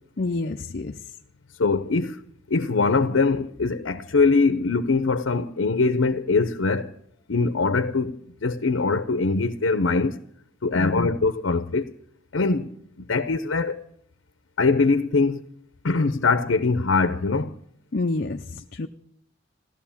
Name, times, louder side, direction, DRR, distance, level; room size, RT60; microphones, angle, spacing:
voice 1, 0.2-1.0 10.7-11.1 17.9-18.9, left 3 dB, 50° left, 0.6 m, -28 dB
voice 2, 1.6-2.2 2.5-6.9 7.3-10.2 10.6-11.9 12.3-12.7 13.0-13.8 14.6-15.5 15.8-17.5, left 4 dB, 90° left, 0.7 m, -22 dB
16.5 x 12.5 x 7.1 m
head